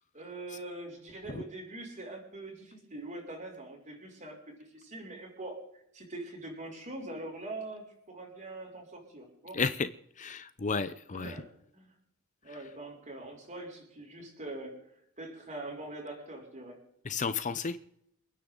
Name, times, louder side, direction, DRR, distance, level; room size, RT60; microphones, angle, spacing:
voice 1, 0.1-5.6 5.9-9.6 11.1-11.4 11.7-11.9 12.4-14.8 15.2-16.8, right 2 dB, 35° right, 0 dB, 5.9 m, -43 dB
voice 2, 9.5-9.9 10.2-11.4 12.5-12.6 17.0-17.8, left 5 dB, 35° left, 13 dB, 0.6 m, -32 dB
29.5 x 10.0 x 3.9 m, 0.76 s
head